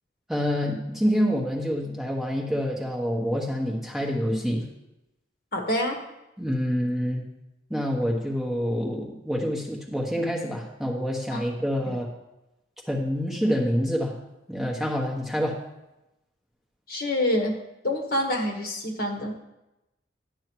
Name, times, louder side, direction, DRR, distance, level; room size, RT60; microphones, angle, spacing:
voice 1, 0.3-4.7 6.4-7.2 7.7-12.1 12.9-14.1 14.5-15.6, equal, ahead, -2 dB, 1.1 m, -27 dB
voice 2, 5.5-6.0 11.3-11.4 11.9-12.0 16.9-17.5 17.8-19.3, left 1 dB, 50° left, 2 dB, 1.5 m, -26 dB
11.0 x 6.4 x 4.7 m, 0.94 s
head